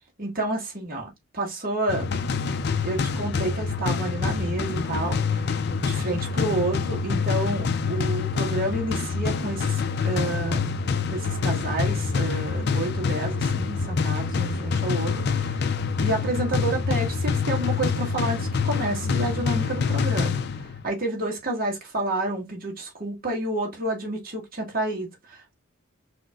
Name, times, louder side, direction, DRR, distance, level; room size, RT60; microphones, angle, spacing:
voice 1, 0.2-1.1 1.3-2.1 2.8-10.8 11.1-15.7 16.0-25.5, right 2 dB, 45° right, 1.7 m, -30 dB
sound 1, 1.9-20.9, left 5 dB, 50° left, 0.5 m, -26 dB
5.8 x 2.9 x 2.3 m
head